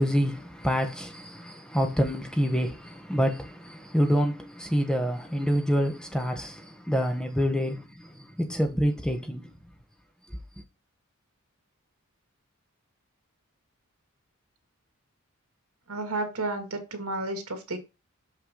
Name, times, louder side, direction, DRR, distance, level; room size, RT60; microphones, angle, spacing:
voice 1, 0.0-9.5, equal, 5° left, 1.0 m, -27 dB
voice 2, 15.9-17.8, right 2 dB, 90° right, 2.2 m, -32 dB
6.8 x 5.6 x 3.7 m
head